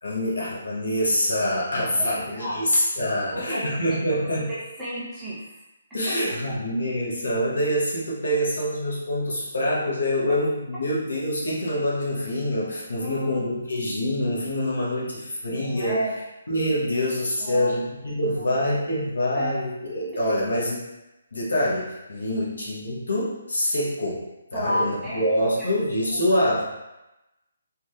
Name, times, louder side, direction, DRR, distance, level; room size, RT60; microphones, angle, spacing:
voice 1, 0.0-4.5 5.9-16.0 16.5-20.8 21.3-24.3 24.5-26.6, left 1 dB, 85° left, -6 dB, 0.7 m, -25 dB
voice 2, 2.0-2.6 3.1-3.6 3.9-4.0 4.5-5.4 6.1-6.2 13.0-13.4 15.5-16.1 17.4-17.7 18.2-18.5 19.3-19.5 22.3-22.4 24.5-25.7 26.1-26.2, equal, 10° right, -10 dB, 0.7 m, -32 dB
2.7 x 2.2 x 2.2 m, 0.98 s
hypercardioid pair, 155°, 0 cm